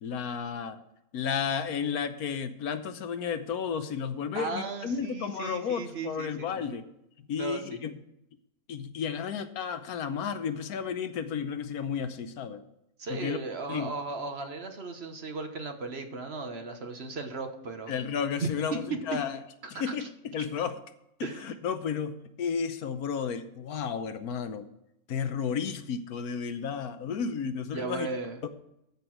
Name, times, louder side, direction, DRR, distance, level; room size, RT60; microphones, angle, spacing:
voice 1, 0.0-0.8 1.1-6.9 7.3-8.0 8.7-12.6 13.1-13.4 13.7-13.9 17.9-19.4 19.7-20.7 21.2-24.7 25.1-28.1 28.4-28.5, left 6 dB, 80° left, 10 dB, 1.3 m, -32 dB
voice 2, 4.3-6.8 7.4-7.8 13.0-17.9 18.4-19.2 19.7-20.1 21.2-21.4 27.7-28.5, right 3 dB, 45° right, 5 dB, 1.3 m, -36 dB
14.0 x 6.0 x 4.7 m, 0.84 s
omnidirectional pair, 1.6 m